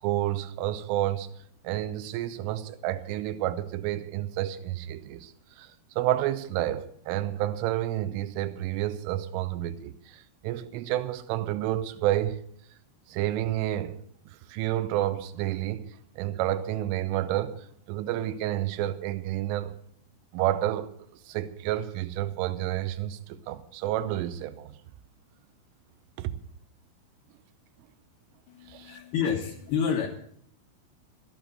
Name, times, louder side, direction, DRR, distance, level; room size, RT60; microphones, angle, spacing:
voice 1, 0.0-1.3 1.6-12.4 13.1-14.0 14.3-15.9 16.2-19.8 20.3-24.8 26.2-26.3 28.7-29.0, right 13 dB, 80° right, 3.3 m, -30 dB
voice 2, 28.5-30.1, left 7 dB, 65° left, 2.8 m, -29 dB
13.5 x 9.0 x 7.7 m
omnidirectional pair, 5.8 m